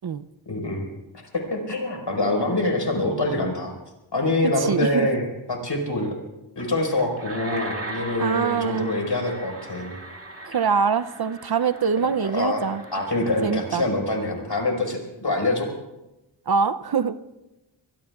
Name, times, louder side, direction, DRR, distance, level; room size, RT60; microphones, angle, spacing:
voice 1, 0.5-0.8 1.3-3.7 4.1-6.1 6.5-9.9 12.3-12.6 12.9-15.7, left 2 dB, 55° left, 2 dB, 5.0 m, -25 dB
voice 2, 4.6-5.1 8.2-8.9 10.5-12.8 13.4-13.8 16.5-17.2, right 6 dB, 50° right, 12 dB, 0.6 m, -24 dB
sound 1, 6.6-13.7, right 2 dB, 30° right, 2.6 m, -39 dB
24.5 x 21.5 x 2.4 m, 0.98 s
cardioid pair, 45°, 48 cm